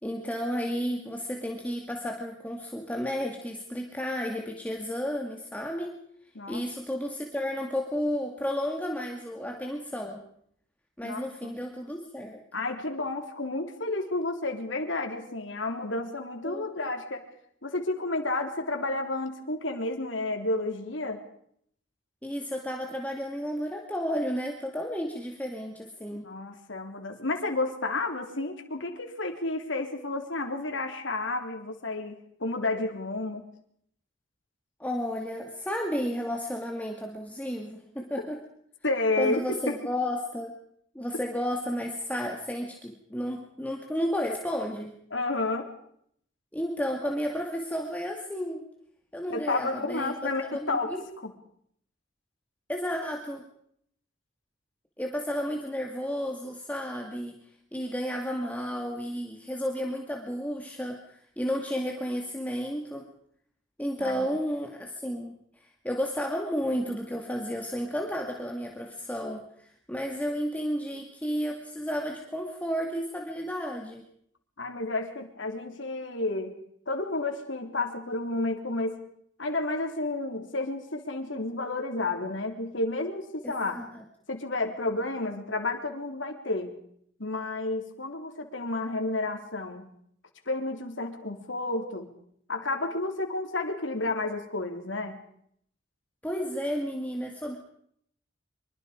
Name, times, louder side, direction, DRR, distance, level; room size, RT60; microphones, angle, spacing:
voice 1, 0.0-5.9 6.5-10.2 11.0-12.4 16.4-16.7 22.2-26.3 34.8-38.4 39.2-40.5 40.9-44.9 46.5-48.6 49.1-50.1 50.4-51.0 52.7-53.4 55.0-57.4 57.7-63.0 63.8-65.3 65.6-74.0 83.4-84.0 96.2-97.6, equal, 10° left, 1 dB, 2.2 m, -32 dB
voice 2, 6.4-6.7 11.0-11.5 12.5-17.2 17.6-21.2 26.1-33.4 38.8-39.8 45.1-45.7 49.3-50.9 51.2-51.3 64.0-64.3 74.6-76.5 76.9-79.0 79.4-83.8 84.3-86.7 87.2-89.9 90.5-92.1 92.5-95.2, left 2 dB, 70° left, 3 dB, 3.6 m, -31 dB
25.0 x 24.5 x 5.2 m, 0.69 s
head